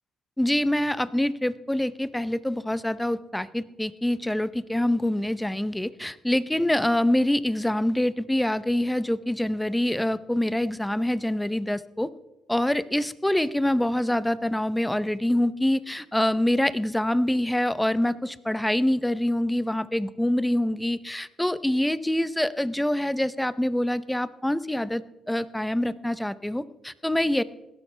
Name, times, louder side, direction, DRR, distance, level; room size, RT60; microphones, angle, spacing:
voice 1, 0.4-12.1 12.5-25.0 25.3-27.4, left 1 dB, 5° left, 16 dB, 0.7 m, -25 dB
16.5 x 12.5 x 3.3 m, 1.0 s
cardioid pair, 90°, 0 cm